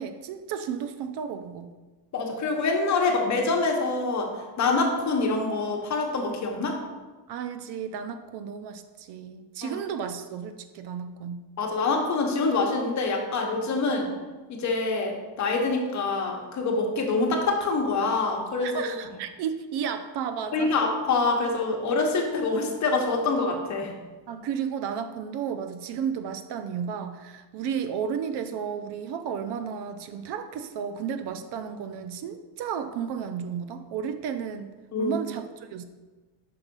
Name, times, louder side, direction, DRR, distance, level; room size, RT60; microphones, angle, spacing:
voice 1, 0.0-1.7 7.3-11.4 18.6-20.7 24.3-34.7 35.0-35.8, right 7 dB, 60° right, 9 dB, 0.6 m, -33 dB
voice 2, 2.1-4.3 4.6-6.8 9.6-9.8 11.6-14.1 14.5-18.7 20.5-23.9 34.9-35.2, left 3 dB, 40° left, 2 dB, 1.1 m, -25 dB
5.8 x 4.0 x 5.3 m, 1.3 s
cardioid pair, 135°, 46 cm